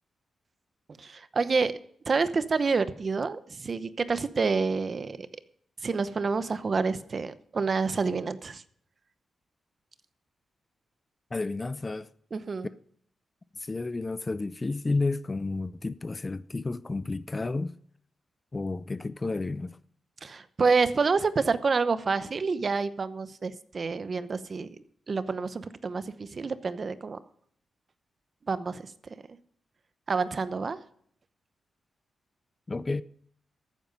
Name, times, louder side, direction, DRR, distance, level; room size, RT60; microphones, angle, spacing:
voice 1, 1.0-1.7 2.1-5.2 5.8-8.6 12.3-12.7 20.2-24.7 25.1-27.2 28.5-28.8 30.1-30.8, right 4 dB, 45° right, 0.8 m, -28 dB
voice 2, 11.3-12.1 13.7-17.7 18.5-19.8 32.7-33.0, left 3 dB, 25° left, 0.5 m, -31 dB
13.5 x 9.1 x 5.3 m
cardioid pair, 90°, 0 cm